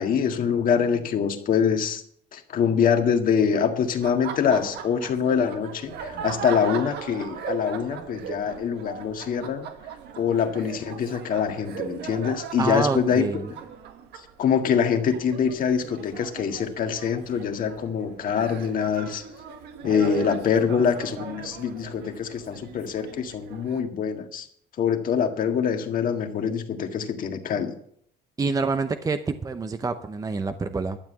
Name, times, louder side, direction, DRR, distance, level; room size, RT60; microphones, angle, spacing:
voice 1, 0.0-2.0 2.3-9.7 10.2-13.4 14.2-19.2 19.8-24.5 24.8-27.7, left 7 dB, 55° left, 5 dB, 1.8 m, -24 dB
Laughter, 3.9-23.8, right 7 dB, 80° right, 1.4 m, -38 dB
voice 2, 12.6-13.5 28.4-31.0, right 4 dB, 20° right, 9 dB, 0.8 m, -27 dB
12.5 x 7.6 x 7.4 m, 0.64 s
cardioid pair, 110°, 17 cm